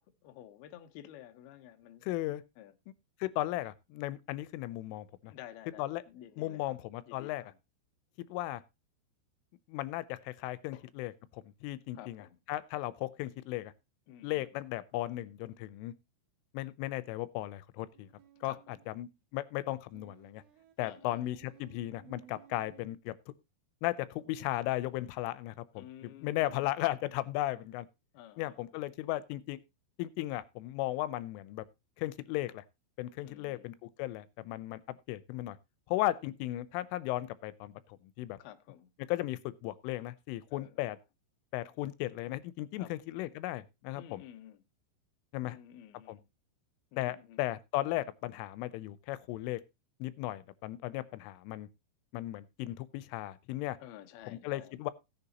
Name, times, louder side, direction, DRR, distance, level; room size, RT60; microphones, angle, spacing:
voice 1, 0.0-2.0 2.6-2.7 5.3-6.8 7.1-7.6 10.7-10.8 11.9-12.4 14.1-14.5 18.4-18.8 20.8-21.3 25.8-26.7 28.1-28.7 33.2-33.7 38.4-38.9 40.5-40.9 42.8-43.0 44.0-44.6 45.4-46.3 46.9-47.4 53.8-54.8, left 12 dB, 70° left, 2.6 m, -52 dB
voice 2, 2.0-2.4 3.2-5.3 5.8-6.0 6.4-7.4 8.2-8.6 9.7-13.7 14.2-15.9 16.5-18.1 18.4-18.5 18.9-20.4 20.8-23.1 23.8-27.9 28.4-29.6 30.0-31.6 32.0-32.6 33.0-34.8 35.1-35.6 35.9-37.7 38.2-38.4 39.1-41.0 41.5-44.2 45.3-45.6 46.1-46.2 47.0-49.6 50.0-51.7 52.1-53.8 54.3-54.9, left 16 dB, 85° left, 3.2 m, -36 dB
sound 1, 17.9-19.0 19.9-23.0, right 11 dB, 85° right, 3.9 m, -59 dB
17.5 x 6.9 x 2.8 m
omnidirectional pair, 5.5 m